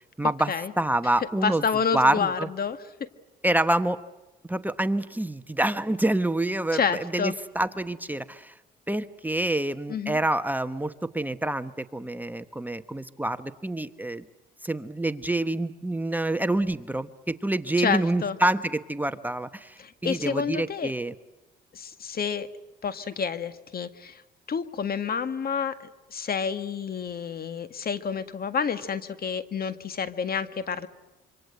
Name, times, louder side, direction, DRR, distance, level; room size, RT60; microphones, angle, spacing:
voice 1, 0.2-1.6 1.9-2.5 3.4-4.0 4.5-8.5 8.9-14.2 14.6-21.1, right 1 dB, 10° right, 10 dB, 1.1 m, -27 dB
voice 2, 1.4-3.1 6.7-7.3 9.9-10.2 17.8-18.4 19.8-20.9 21.7-22.5 22.8-24.2 24.5-30.9, left 6 dB, 50° left, 11 dB, 1.9 m, -29 dB
27.0 x 25.0 x 8.0 m, 1.0 s
cardioid pair, 90°, 20 cm